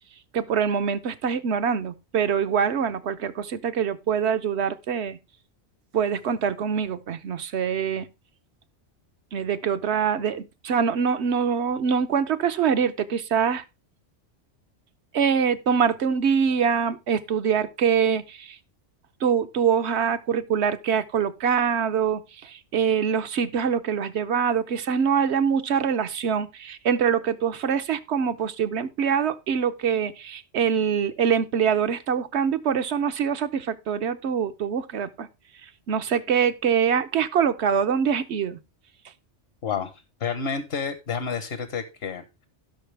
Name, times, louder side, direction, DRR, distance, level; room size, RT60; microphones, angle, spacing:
voice 1, 0.3-5.2 5.9-8.1 9.3-13.6 15.1-18.6 19.2-35.3 35.6-38.6, right 7 dB, 70° right, 1.1 m, -24 dB
voice 2, 39.6-39.9 40.2-42.5, left 6 dB, 60° left, 1.2 m, -30 dB
16.5 x 5.8 x 3.3 m
omnidirectional pair, 1.2 m